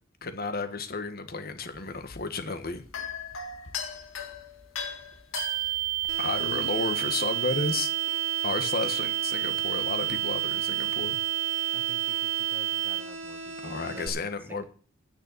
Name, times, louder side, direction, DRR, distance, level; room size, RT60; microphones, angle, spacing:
voice 1, 0.2-2.8 6.2-7.9 8.4-11.2 13.6-14.6, left 3 dB, 50° left, 9 dB, 1.4 m, -32 dB
sound 1, 1.7-6.8, left 6 dB, 90° left, 1.8 m, -39 dB
sound 2, 5.3-13.0, right 17 dB, 50° right, 0.7 m, -29 dB
sound 3, 6.1-14.1, right 2 dB, 70° right, 1.9 m, -40 dB
voice 2, 11.7-14.6, right 1 dB, 10° right, 8 dB, 1.1 m, -49 dB
9.7 x 6.7 x 8.3 m, 0.41 s
head